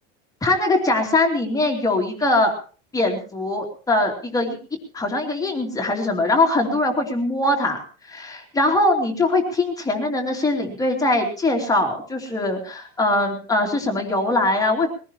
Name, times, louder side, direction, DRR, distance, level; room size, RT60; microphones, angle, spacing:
voice 1, 0.4-2.5 2.9-4.6 4.9-7.8 8.1-14.9, left 2 dB, 10° left, 2 dB, 2.7 m, -21 dB
22.0 x 16.5 x 3.0 m, 0.39 s
supercardioid pair, 160°, 32 cm